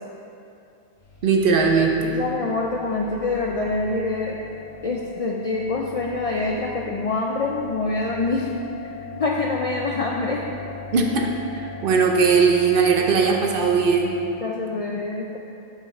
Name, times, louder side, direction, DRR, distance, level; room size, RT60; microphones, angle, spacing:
sound 1, 1.0-14.3, left 5 dB, 35° left, 1.0 m, -39 dB
voice 1, 1.2-2.1 10.9-11.3 11.5-14.1, right 5 dB, 60° right, 1 dB, 0.8 m, -19 dB
voice 2, 2.0-4.4 4.8-8.5 9.2-10.4 13.2-13.3 14.4-15.4, left 3 dB, 60° left, -1 dB, 0.4 m, -25 dB
7.1 x 5.6 x 3.1 m, 2.6 s
omnidirectional pair, 1.1 m